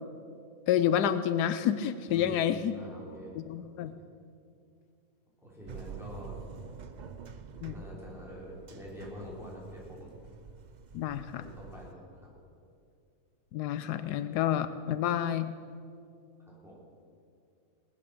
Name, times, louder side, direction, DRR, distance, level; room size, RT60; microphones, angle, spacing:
voice 1, 0.7-2.7 3.4-3.9 7.6-7.7 10.9-11.4 13.5-15.5, left 10 dB, 85° left, 12 dB, 1.2 m, -29 dB
voice 2, 2.1-4.1 5.4-6.4 7.6-10.2 11.3-12.4 16.5-16.8, left 1 dB, ahead, -6 dB, 4.1 m, -46 dB
sound 1, 5.7-11.9, right 6 dB, 75° right, 0.4 m, -47 dB
19.0 x 10.5 x 6.7 m, 2.4 s
omnidirectional pair, 1.7 m